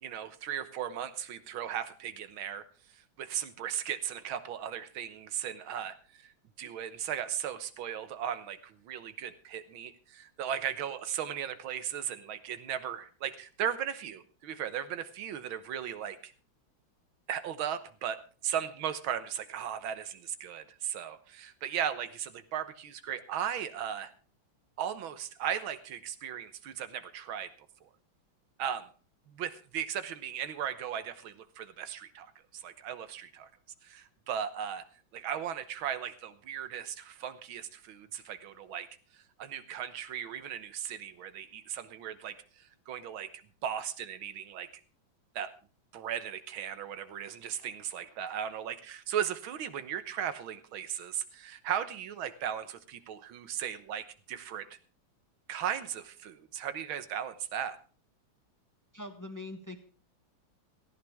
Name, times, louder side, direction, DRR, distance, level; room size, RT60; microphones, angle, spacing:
voice 1, 0.0-2.6 2.9-6.3 6.6-16.3 17.3-24.1 24.8-27.5 27.8-27.9 28.6-28.9 29.3-33.5 33.8-34.8 35.1-38.9 39.1-43.3 43.6-44.7 45.4-45.5 45.9-54.8 55.5-57.8, right 9 dB, 90° right, 12 dB, 1.9 m, -37 dB
voice 2, 58.9-59.8, left 2 dB, 10° left, 6 dB, 1.2 m, -42 dB
18.0 x 14.5 x 3.5 m, 0.38 s
omnidirectional pair, 2.1 m